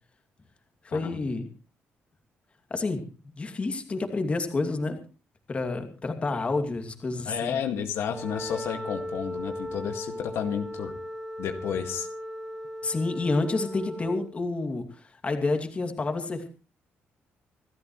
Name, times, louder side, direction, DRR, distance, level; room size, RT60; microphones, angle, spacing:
voice 1, 0.8-1.5 2.7-3.0 3.3-5.0 5.5-7.6 12.8-16.5, left 3 dB, 30° left, 6 dB, 2.5 m, -29 dB
voice 2, 7.3-11.0 11.4-12.1, left 8 dB, 80° left, 6 dB, 2.0 m, -31 dB
Wind instrument woodwind instrument, 8.0-14.3, equal, ahead, 1.6 m, -37 dB
27.0 x 13.0 x 3.2 m, 0.34 s
cardioid pair, 125°, 4 cm